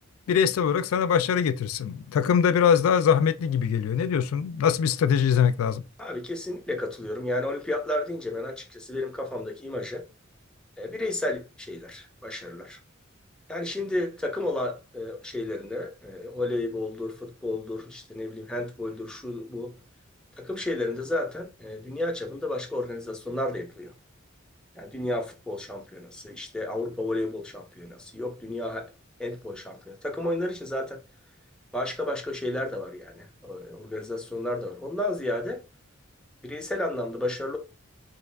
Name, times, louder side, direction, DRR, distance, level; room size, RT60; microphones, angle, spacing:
voice 1, 0.3-5.8, left 7 dB, 90° left, 0.3 m, -22 dB
voice 2, 6.0-10.0 10.8-12.8 13.5-19.7 20.4-23.9 24.8-28.9 29.2-31.0 31.7-35.6 36.4-37.6, left 1 dB, 5° left, 0.5 m, -32 dB
3.1 x 2.4 x 3.2 m
head